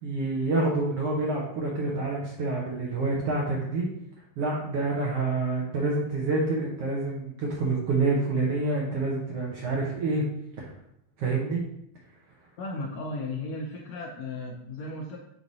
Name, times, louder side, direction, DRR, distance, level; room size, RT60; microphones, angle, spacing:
voice 1, 0.0-3.9 4.4-10.2 10.6-10.7 11.2-11.6, right 3 dB, 70° right, -3 dB, 1.4 m, -27 dB
voice 2, 12.6-15.2, left 2 dB, 80° left, -1 dB, 1.5 m, -35 dB
5.7 x 4.9 x 4.1 m, 0.77 s
omnidirectional pair, 3.9 m